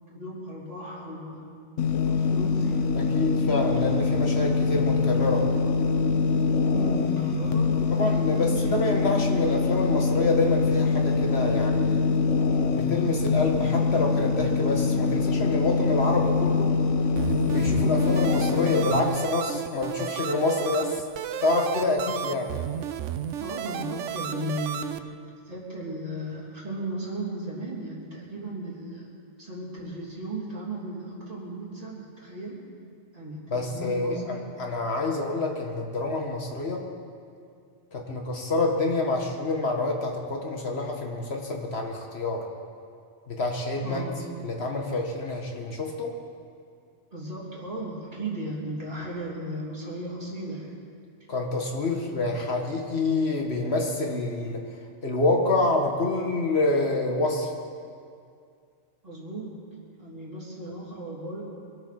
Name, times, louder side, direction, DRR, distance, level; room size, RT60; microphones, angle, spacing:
voice 1, 0.1-1.4 2.1-2.9 6.7-9.0 22.3-22.4 23.4-25.0 25.4-29.1 29.4-32.7 33.1-34.4 43.8-44.3 47.1-50.7 51.9-52.2 59.0-59.5 60.0-61.4, right 1 dB, 30° right, -6 dB, 3.3 m, -36 dB
sound 1, 1.8-19.0, left 4 dB, 80° left, 1.2 m, -24 dB
voice 2, 3.0-5.5 7.9-12.0 12.7-16.7 17.5-21.0 21.4-22.5 33.5-36.9 37.9-42.4 43.3-44.1 44.4-46.1 51.3-54.6 55.0-57.5, left 2 dB, 60° left, 1 dB, 1.9 m, -27 dB
sound 2, 17.2-25.0, right 9 dB, 90° right, 1.0 m, -33 dB
23.0 x 8.9 x 6.0 m, 2.3 s
omnidirectional pair, 1.2 m